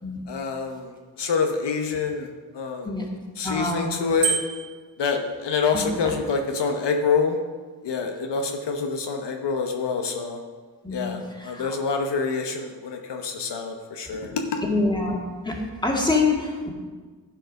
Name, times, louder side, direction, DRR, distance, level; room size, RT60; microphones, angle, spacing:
voice 1, 0.3-0.9 1.2-2.3 2.5-2.9 3.4-4.4 5.0-7.4 7.8-10.4 10.9-14.6, left 5 dB, 70° left, 3 dB, 0.9 m, -26 dB
voice 2, 3.4-4.1 5.7-6.1 10.8-11.8 14.6-15.2 15.4-16.7, left 3 dB, 10° left, -1 dB, 2.1 m, -26 dB
Bicycle bell, 4.2-4.8, right 6 dB, 65° right, 2.6 m, -26 dB
11.5 x 4.7 x 5.3 m, 1.4 s
cardioid pair, 60°, 43 cm